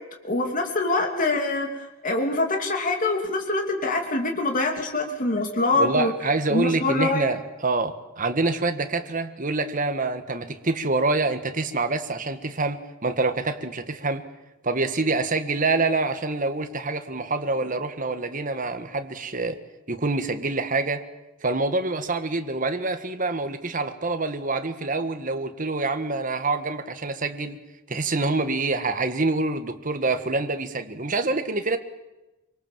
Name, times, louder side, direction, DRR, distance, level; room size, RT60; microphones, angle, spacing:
voice 1, 0.2-6.1 6.5-7.3, left 2 dB, 45° left, 2 dB, 3.0 m, -24 dB
voice 2, 5.8-14.2 14.6-19.6 19.9-21.0 21.4-27.6 27.9-31.8, right 3 dB, 45° right, 8 dB, 1.6 m, -26 dB
25.0 x 24.5 x 7.6 m, 1.0 s
head